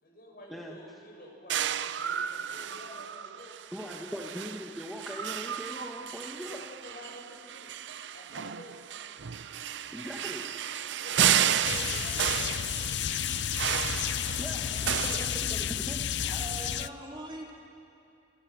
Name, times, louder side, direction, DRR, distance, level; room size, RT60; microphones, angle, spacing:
voice 1, 0.0-3.6 6.4-7.7 8.1-8.8 11.0-13.0 14.1-15.1, left 1 dB, 55° left, -1 dB, 7.2 m, -49 dB
sound 1, 1.5-16.0, right 9 dB, 75° right, 0.6 m, -32 dB
voice 2, 3.7-6.6 9.9-10.5 14.4-16.0, equal, ahead, -2 dB, 1.5 m, -40 dB
sound 2, 11.6-16.9, left 9 dB, 75° left, 0.5 m, -31 dB
voice 3, 16.2-17.5, right 1 dB, 25° right, -2 dB, 3.8 m, -41 dB
29.5 x 27.0 x 6.3 m, 2.6 s
head